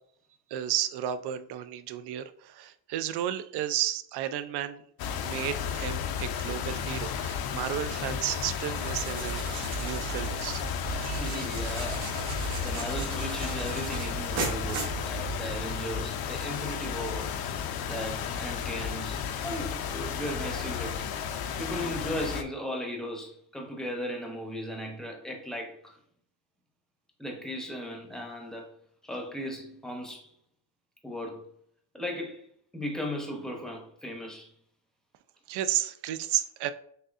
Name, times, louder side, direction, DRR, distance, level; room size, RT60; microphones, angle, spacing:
voice 1, 0.5-4.8 5.2-10.6 11.1-11.4 35.5-36.7, right 11 dB, 60° right, 0.5 m, -33 dB
sound 1, 5.0-22.4, left 7 dB, 50° left, 0.6 m, -33 dB
sound 2, 8.6-15.6, right 5 dB, 80° right, 1.4 m, -36 dB
voice 2, 11.0-12.1 12.4-17.3 17.8-21.1 21.6-26.0 27.2-28.7 29.0-30.3 31.0-31.5 31.9-32.4 32.7-34.5, equal, ahead, 0.8 m, -37 dB
6.4 x 2.6 x 2.5 m
cardioid pair, 130°, 47 cm